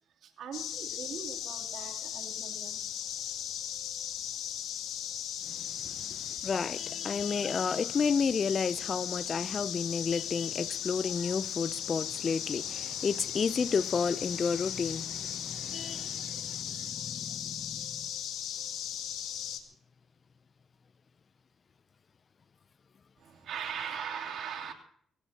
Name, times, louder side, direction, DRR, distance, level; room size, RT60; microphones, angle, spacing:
voice 1, 0.2-2.9 5.8-6.0 6.3-6.4 23.2-24.7, right 7 dB, 70° right, 3.1 m, -40 dB
sound 1, 0.5-19.6, left 10 dB, 90° left, 2.2 m, -37 dB
voice 2, 6.4-17.9, left 5 dB, 40° left, 0.6 m, -31 dB
24.0 x 16.5 x 2.9 m
cardioid pair, 90°, 0 cm